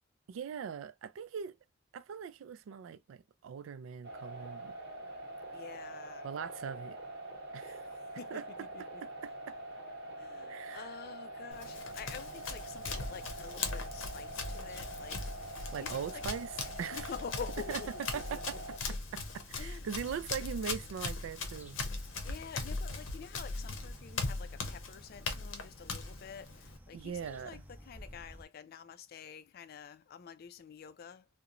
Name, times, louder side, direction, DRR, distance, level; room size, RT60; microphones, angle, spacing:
voice 1, 0.3-1.6 1.9-4.7 6.2-7.0 7.5-7.9 8.3-8.4 9.5-9.6 10.5-10.9 15.7-16.5 16.8-17.1 17.7-17.8 18.1-18.5 19.1-21.8 26.9-27.6, right 7 dB, 85° right, 0.3 m, -40 dB
sound 1, 4.0-18.8, right 1 dB, 55° right, 0.9 m, -45 dB
voice 2, 5.5-6.3 7.6-7.8 8.2-9.0 10.2-15.3 15.8-16.2 16.9-18.6 19.6-19.9 22.2-31.3, left 7 dB, 50° left, 0.3 m, -48 dB
Run, 11.5-26.8, left 3 dB, 90° left, 0.7 m, -40 dB
sound 2, 13.3-28.5, equal, 10° right, 0.5 m, -55 dB
2.9 x 2.1 x 2.4 m
head